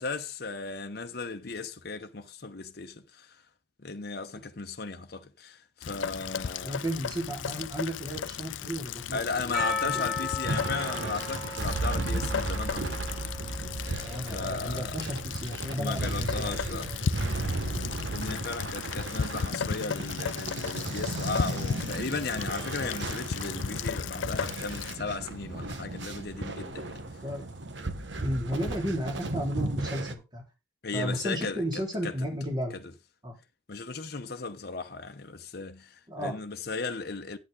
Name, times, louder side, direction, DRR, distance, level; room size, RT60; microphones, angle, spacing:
voice 1, 0.0-3.4 3.8-6.8 9.1-13.0 14.2-15.0 15.8-17.1 18.1-27.0 30.8-32.2 32.7-32.8 33.7-37.4, left 4 dB, 55° left, 0.9 m, -36 dB
Rain, 5.8-25.0, left 7 dB, 85° left, 0.5 m, -36 dB
voice 2, 6.6-9.5 9.8-10.1 14.0-17.0 18.2-18.4 27.2-27.4 28.2-30.4 30.9-32.8 33.2-33.3 36.1-36.3, equal, 25° right, 3.9 m, -33 dB
Percussion, 9.5-14.5, left 4 dB, ahead, 3.5 m, -36 dB
sound 1, 10.4-30.1, right 2 dB, 75° right, 1.4 m, -35 dB
9.3 x 8.6 x 3.7 m
head